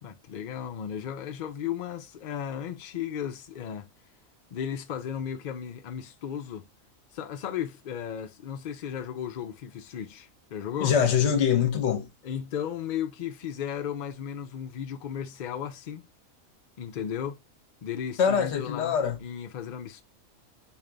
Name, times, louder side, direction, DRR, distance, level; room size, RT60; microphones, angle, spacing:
voice 1, 0.0-3.9 4.5-6.7 7.1-11.0 12.2-16.0 16.8-17.4 17.8-20.0, left 9 dB, 80° left, 0.4 m, -35 dB
voice 2, 10.8-12.1 18.2-19.2, left 7 dB, 60° left, 0.9 m, -24 dB
3.8 x 2.5 x 3.3 m
omnidirectional pair, 1.4 m